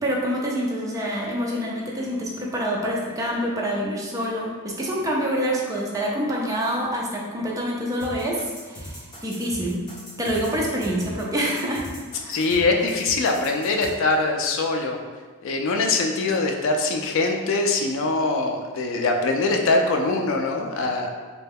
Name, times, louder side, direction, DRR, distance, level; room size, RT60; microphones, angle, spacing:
voice 1, 0.0-9.8 10.2-11.8 12.2-12.4, equal, 15° right, -3 dB, 0.4 m, -26 dB
sound 1, 8.0-13.9, equal, 20° left, 0.9 m, -39 dB
voice 2, 12.3-15.0 15.4-21.1, left 3 dB, 60° left, 3 dB, 0.3 m, -23 dB
3.2 x 2.2 x 3.4 m, 1.5 s
head